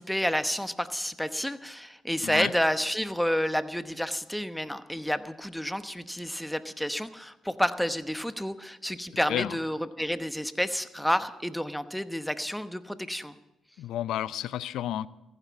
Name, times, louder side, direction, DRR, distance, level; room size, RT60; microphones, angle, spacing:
voice 1, 0.0-13.3, equal, 5° left, 1.0 m, -30 dB
voice 2, 2.2-2.5 9.3-9.6 13.8-15.1, left 12 dB, 80° left, 0.5 m, -31 dB
15.0 x 11.0 x 7.1 m
supercardioid pair, 60°, 0 cm